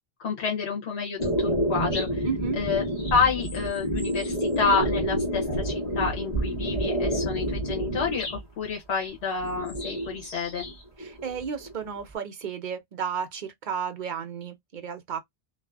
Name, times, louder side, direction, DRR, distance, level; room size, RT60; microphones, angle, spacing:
voice 1, 0.2-2.3 2.6-2.8 3.1-10.7, left 5 dB, 90° left, 1.1 m, -29 dB
sound 1, 1.2-8.4 9.4-10.7 11.0-12.0, equal, 40° left, 1.1 m, -28 dB
voice 2, 2.3-2.6 11.0-15.2, right 6 dB, 50° right, 0.8 m, -33 dB
2.5 x 2.5 x 2.2 m
omnidirectional pair, 1.1 m